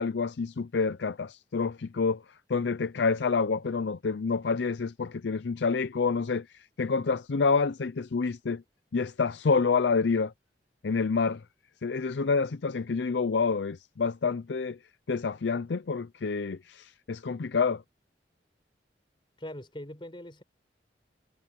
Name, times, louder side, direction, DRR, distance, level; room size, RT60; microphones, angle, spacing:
voice 1, 0.0-2.2 2.5-8.6 8.9-10.3 10.8-11.4 11.8-14.8 15.1-17.8, left 4 dB, 75° left, 0.5 m, -28 dB
voice 2, 19.4-20.4, left 1 dB, 30° left, 4.3 m, -41 dB
head